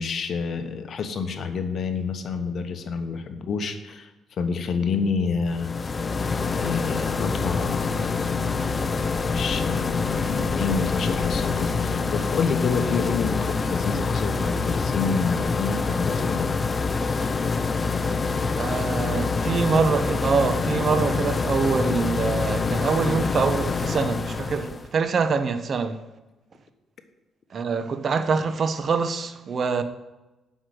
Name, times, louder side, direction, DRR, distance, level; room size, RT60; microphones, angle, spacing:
voice 1, 0.0-4.1 4.4-5.7 6.5-8.1 9.3-16.5, left 5 dB, 55° left, 1.1 m, -28 dB
sound 1, 5.5-24.9, left 4 dB, 30° left, 0.5 m, -26 dB
voice 2, 18.5-26.0 27.5-29.8, right 5 dB, 50° right, 0.8 m, -25 dB
7.8 x 6.4 x 7.8 m
cardioid pair, 90°, 0 cm